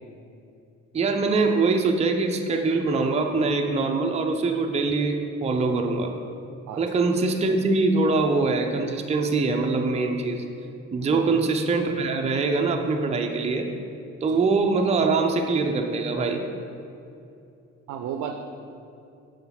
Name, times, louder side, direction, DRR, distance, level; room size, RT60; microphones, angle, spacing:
voice 1, 0.9-6.1 6.8-10.4 10.9-13.7 14.2-16.4, right 3 dB, 20° right, 4 dB, 0.5 m, -23 dB
voice 2, 17.9-18.4, right 8 dB, 75° right, 5 dB, 0.5 m, -33 dB
5.7 x 4.9 x 3.9 m, 2.6 s
cardioid pair, 90°, 30 cm